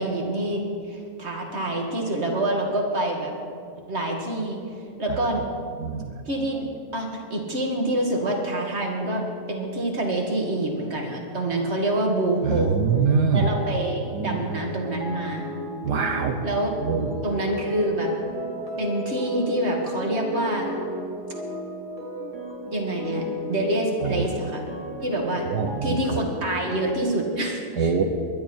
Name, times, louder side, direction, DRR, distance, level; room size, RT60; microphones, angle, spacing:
voice 1, 0.0-3.3 3.9-4.6 5.0-5.4 6.3-6.7 6.9-12.8 13.3-15.4 16.4-16.7 17.2-18.1 18.8-20.7 22.7-24.7 25.0-25.5 25.8-28.0, right 1 dB, 40° right, 1 dB, 2.5 m, -26 dB
voice 2, 12.4-13.4 14.1-14.4 15.8-16.4 16.8-17.0 24.1-24.2 25.5-26.2 27.8-28.0, right 6 dB, 75° right, 5 dB, 1.6 m, -23 dB
sound 1, 12.8-27.0, equal, 20° right, 3.1 m, -35 dB
21.5 x 11.5 x 4.5 m, 2.5 s
omnidirectional pair, 1.8 m